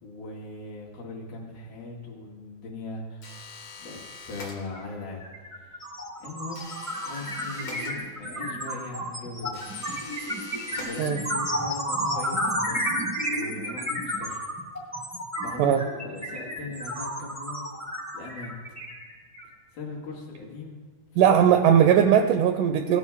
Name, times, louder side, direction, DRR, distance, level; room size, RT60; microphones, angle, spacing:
voice 1, 0.0-3.3 3.8-4.0 4.3-5.2 5.6-5.8 6.2-6.7 7.0-9.6 10.7-12.9 13.2-14.4 15.4-17.7 18.1-18.5 19.7-20.9, left 3 dB, 75° left, -4 dB, 3.9 m, -39 dB
sound 1, 3.2-5.0 6.5-8.4 9.5-11.6, left 3 dB, 50° left, 1.2 m, -43 dB
sound 2, 4.7-4.9 5.2-19.5, equal, 20° left, 0.4 m, -31 dB
voice 2, 21.2-23.0, right 9 dB, 85° right, 6 dB, 1.9 m, -19 dB
17.0 x 9.2 x 3.6 m, 1.5 s
omnidirectional pair, 4.2 m